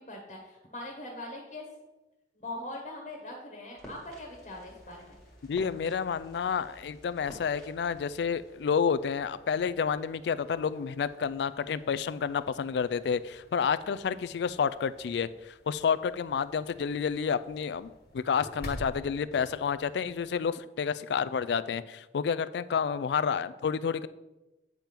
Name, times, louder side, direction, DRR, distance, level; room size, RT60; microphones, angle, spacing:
voice 1, 0.0-1.6 2.3-5.2, left 1 dB, 40° left, -1 dB, 1.4 m, -41 dB
sound 1, 3.8-8.8, equal, 5° left, 1.8 m, -52 dB
sound 2, 4.1-20.4, equal, 60° left, 1.4 m, -51 dB
voice 2, 5.5-24.1, left 6 dB, 75° left, 15 dB, 0.3 m, -30 dB
8.9 x 3.5 x 5.8 m, 1.0 s
head